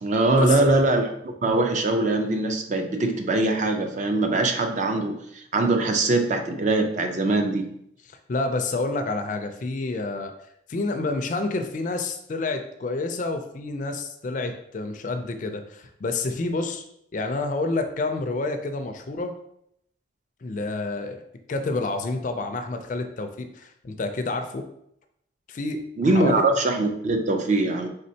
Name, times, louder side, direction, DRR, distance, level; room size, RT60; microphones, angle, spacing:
voice 1, 0.0-7.7 26.0-27.9, right 2 dB, 40° right, 4 dB, 0.4 m, -22 dB
voice 2, 8.1-10.3 10.7-16.8 17.1-19.3 20.4-21.2 21.5-24.7 25.5-26.4, left 3 dB, 40° left, 6 dB, 0.4 m, -29 dB
4.2 x 3.4 x 2.7 m, 0.74 s
head